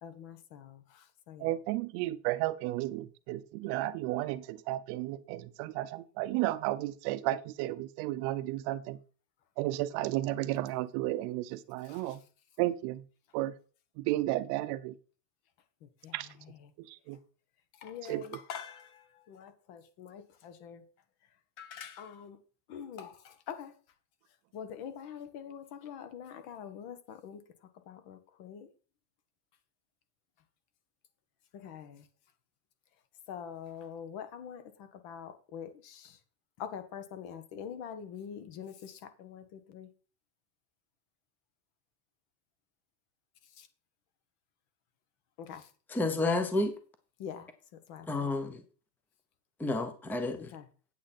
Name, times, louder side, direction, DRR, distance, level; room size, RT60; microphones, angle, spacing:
voice 1, 0.0-1.5 11.9-12.2 16.0-16.7 17.8-20.8 21.6-22.4 22.7-23.7 24.5-27.4 27.9-28.7 31.5-32.0 33.3-36.2 36.6-39.9 43.6-43.7 45.4-45.7 47.2-47.5 47.9-48.3 50.4-50.6, left 8 dB, 55° left, 1.7 m, -45 dB
voice 2, 1.4-9.0 9.6-12.2 12.6-13.0 13.3-13.5 14.0-14.9 16.1-16.3 17.1-17.2 18.1-18.2, right 16 dB, 55° right, 0.7 m, -33 dB
voice 3, 45.9-46.8 48.1-48.6 49.6-50.5, left 2 dB, 5° left, 0.7 m, -30 dB
8.8 x 8.4 x 4.2 m
supercardioid pair, 145°, 47 cm